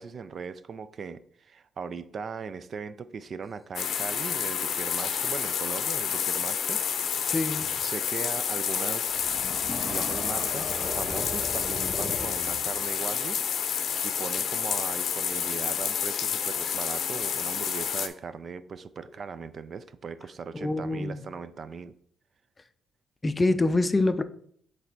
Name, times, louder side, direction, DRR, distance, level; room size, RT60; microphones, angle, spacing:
voice 1, 0.0-7.3 7.8-9.4 9.8-21.9, right 5 dB, 50° right, 0.4 m, -39 dB
sound 1, 3.8-18.1, left 8 dB, 65° left, 0.6 m, -29 dB
voice 2, 7.3-7.7 20.5-21.2 23.2-24.2, left 2 dB, 20° left, 0.4 m, -25 dB
sound 2, 9.1-13.0, equal, 5° right, 2.0 m, -37 dB
7.3 x 3.3 x 4.1 m
cardioid pair, 90°, 0 cm